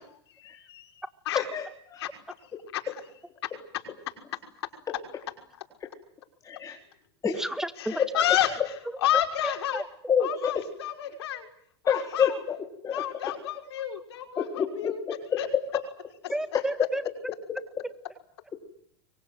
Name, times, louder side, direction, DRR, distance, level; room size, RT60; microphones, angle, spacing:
voice 1, 0.4-0.9 1.3-1.4 2.0-2.1 2.7-2.8 7.8-8.5 9.0-9.8 10.2-11.5 11.8-12.3 12.9-15.0 15.4-15.5, left 12 dB, 75° left, 4 dB, 6.0 m, -30 dB
voice 2, 1.3-2.1 6.4-6.8 7.2-7.3 10.1-10.7 11.9-12.6 12.8-13.0 14.4-15.4 15.7-15.8, left 7 dB, 25° left, 1 dB, 4.2 m, -28 dB
voice 3, 7.2-8.3 8.9-9.2 9.7-9.8 16.3-17.0, right 1 dB, 5° right, 12 dB, 1.8 m, -32 dB
29.0 x 24.0 x 7.9 m, 0.67 s
hypercardioid pair, 110°, 14 cm